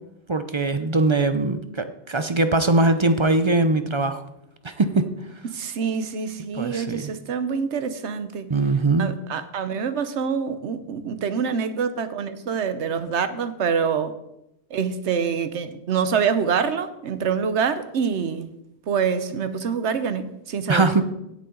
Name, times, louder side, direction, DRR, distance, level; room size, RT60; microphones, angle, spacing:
voice 1, 0.3-4.2 4.6-5.0 6.5-7.1 8.5-9.1 20.7-21.0, right 2 dB, 35° right, 10 dB, 0.5 m, -21 dB
voice 2, 5.5-8.5 9.0-14.1 14.7-18.5 18.9-20.9, right 6 dB, 75° right, 11 dB, 1.1 m, -26 dB
16.5 x 6.8 x 3.8 m, 0.84 s
omnidirectional pair, 1.2 m